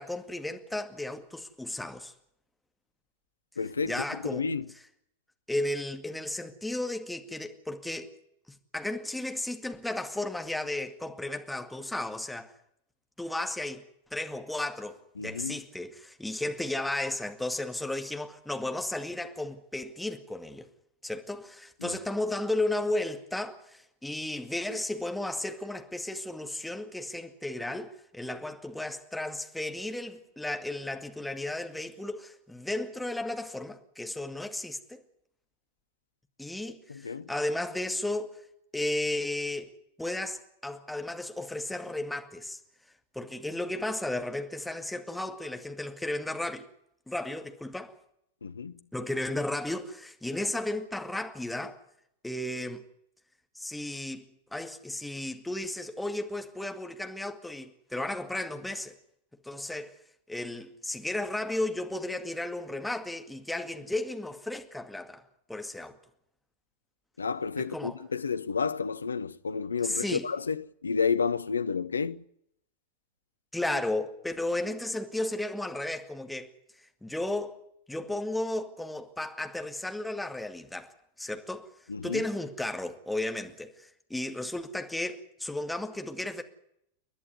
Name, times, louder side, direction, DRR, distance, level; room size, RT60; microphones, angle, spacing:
voice 1, 0.0-2.1 3.8-4.5 5.5-8.1 8.7-12.5 13.2-13.8 14.1-20.7 21.0-35.0 36.4-38.3 38.7-42.6 43.1-46.7 47.1-48.0 48.9-51.8 52.2-52.8 53.5-54.3 54.5-59.0 59.4-59.9 60.3-65.2 65.5-66.0 67.6-68.0 69.8-70.2 73.5-76.5 77.0-77.5 77.9-81.7 82.0-86.4, left 1 dB, 5° left, 2.2 m, -34 dB
voice 2, 3.6-4.0 4.3-4.7 15.2-15.6 21.8-22.0 36.9-37.3 48.4-48.7 67.2-72.2 81.9-82.2, left 5 dB, 75° left, 0.7 m, -31 dB
30.0 x 11.0 x 9.5 m
figure-of-eight pair, 90°, 0 cm